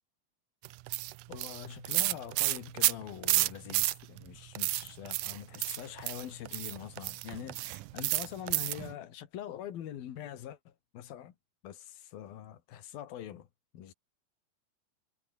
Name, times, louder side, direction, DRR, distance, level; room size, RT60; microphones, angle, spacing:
sound 1, 0.6-4.2 4.5-8.9, right 19 dB, 80° right, 1.8 m, -31 dB
voice 1, 1.3-11.4 11.6-13.5 13.7-13.9, left 11 dB, 75° left, 3.9 m, -44 dB
omnidirectional pair, 4.3 m